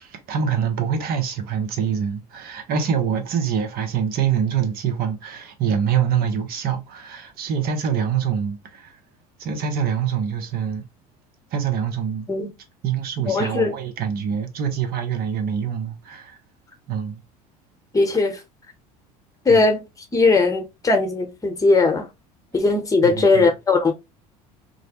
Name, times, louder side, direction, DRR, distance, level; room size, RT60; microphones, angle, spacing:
voice 1, 0.0-9.0 9.4-10.8 11.5-12.3 12.8-16.4 16.9-17.2 19.5-19.7 23.0-23.5, right 7 dB, 50° right, 0.8 m, -25 dB
voice 2, 13.2-13.7 17.9-18.4 19.4-19.8 20.1-22.1 22.5-23.9, left 3 dB, 15° left, 0.9 m, -19 dB
2.5 x 2.0 x 2.9 m
hypercardioid pair, 70°, 19 cm